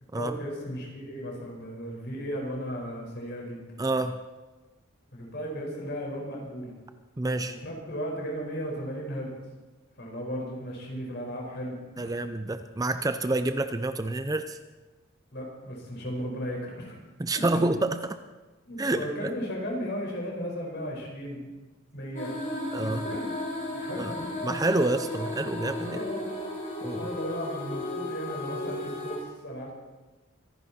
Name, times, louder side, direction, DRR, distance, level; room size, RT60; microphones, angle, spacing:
voice 1, 0.1-3.7 5.1-6.7 7.4-9.3 10.0-12.1 15.3-17.0 17.3-17.6 18.6-21.5 21.9-22.3 22.8-23.3 23.7-24.4 25.8-26.2 27.0-29.7, equal, 55° left, -1 dB, 5.0 m, -35 dB
voice 2, 3.8-4.2 7.2-7.6 12.0-14.6 17.2-18.2 18.8-19.3 22.7-23.1 24.0-24.2 24.4-26.0 26.8-27.1, right 2 dB, 15° right, 9 dB, 0.5 m, -28 dB
sound 1, 22.2-29.2, left 1 dB, 40° left, 4.7 m, -34 dB
24.5 x 11.0 x 4.3 m, 1.2 s
head